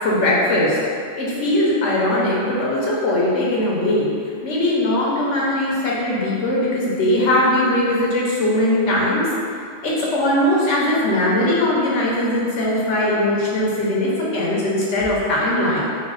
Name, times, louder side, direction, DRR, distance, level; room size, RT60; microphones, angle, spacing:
voice 1, 0.0-0.8 1.2-4.1 4.4-9.3 9.8-15.8, left 1 dB, 75° left, -5 dB, 1.1 m, -20 dB
4.4 x 2.0 x 3.9 m, 2.3 s
omnidirectional pair, 1.2 m